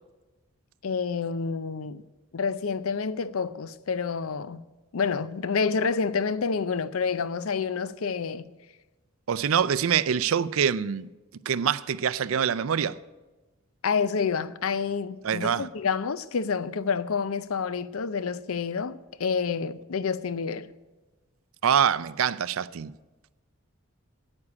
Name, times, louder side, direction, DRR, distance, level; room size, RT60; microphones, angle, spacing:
voice 1, 0.8-2.0 2.3-4.6 4.9-8.5 13.8-20.7, left 5 dB, 75° left, 0.6 m, -28 dB
voice 2, 9.3-11.1 11.5-13.0 15.2-15.7 21.6-22.9, right 8 dB, 70° right, 0.4 m, -25 dB
9.8 x 8.6 x 9.7 m
head